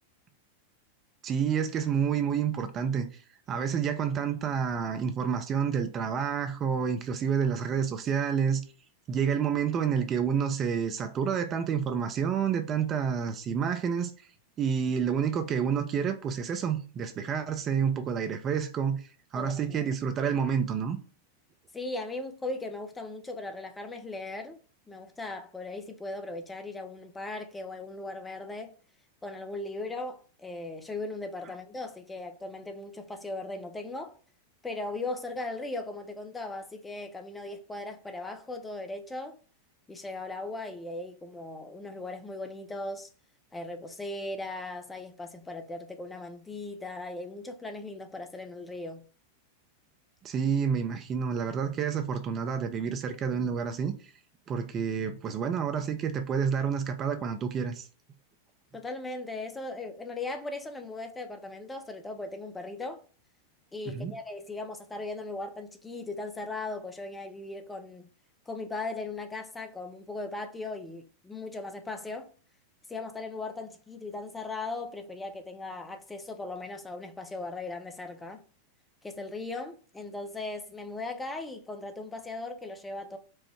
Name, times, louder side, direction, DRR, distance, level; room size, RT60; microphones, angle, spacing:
voice 1, 1.2-3.2 3.5-8.6 9.1-14.1 14.6-21.0 50.2-53.9 54.5-57.9 63.9-64.1, right 7 dB, 30° right, 0.5 m, -29 dB
voice 2, 19.3-19.9 21.7-24.6 24.9-28.7 29.2-34.2 34.6-39.4 39.9-43.1 43.5-49.0 58.7-63.0 63.7-68.1 68.5-72.3 72.9-78.4 79.0-83.2, left 2 dB, 10° left, 0.6 m, -38 dB
4.6 x 2.0 x 4.4 m
figure-of-eight pair, 90°, 0 cm